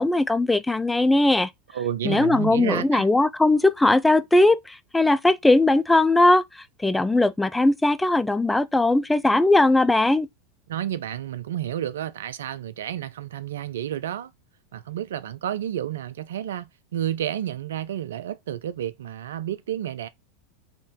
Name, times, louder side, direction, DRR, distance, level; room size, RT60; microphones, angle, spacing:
voice 1, 0.0-1.5 2.0-6.4 6.8-10.3, left 2 dB, 10° left, 0.4 m, -19 dB
voice 2, 1.7-3.1 10.7-14.3 14.7-16.7 16.9-20.1, right 11 dB, 70° right, 0.4 m, -30 dB
3.8 x 2.5 x 3.6 m
figure-of-eight pair, 85°, 0 cm